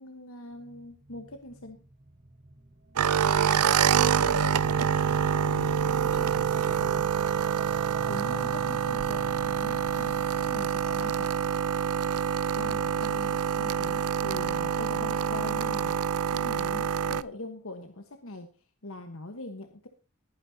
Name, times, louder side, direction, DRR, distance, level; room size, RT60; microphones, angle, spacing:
voice 1, 0.0-1.8 8.1-11.3 12.6-16.0 16.3-18.5 18.8-19.9, left 2 dB, 65° left, 6 dB, 1.3 m, -42 dB
sound 1, 0.5-12.8, right 2 dB, 30° right, 0.7 m, -46 dB
sound 2, 3.0-17.2, right 7 dB, 90° right, 0.6 m, -26 dB
voice 2, 3.7-7.0 12.6-13.0, left 2 dB, 90° left, 4 dB, 2.9 m, -46 dB
21.0 x 9.5 x 2.8 m, 0.32 s
head